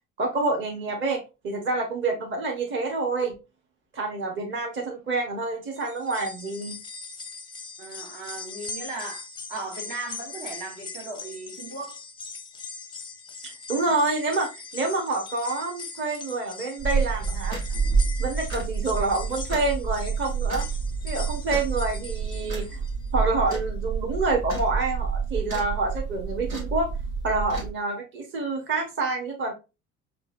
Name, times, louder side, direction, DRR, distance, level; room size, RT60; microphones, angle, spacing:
voice 1, 0.2-3.3 3.9-6.8 13.4-17.6 18.2-20.6 21.0-22.8 23.1-26.9 27.2-29.5, right 3 dB, 30° right, 1.0 m, -27 dB
sound 1, 5.8-23.1 23.5-23.6 24.7-24.8, left 4 dB, 10° left, 0.5 m, -41 dB
voice 2, 7.8-9.2 9.5-12.0, right 3 dB, 55° right, 1.5 m, -37 dB
sound 2, 16.8-27.7, right 5 dB, 85° right, 1.3 m, -28 dB
5.4 x 2.5 x 2.5 m
figure-of-eight pair, 60°, 39 cm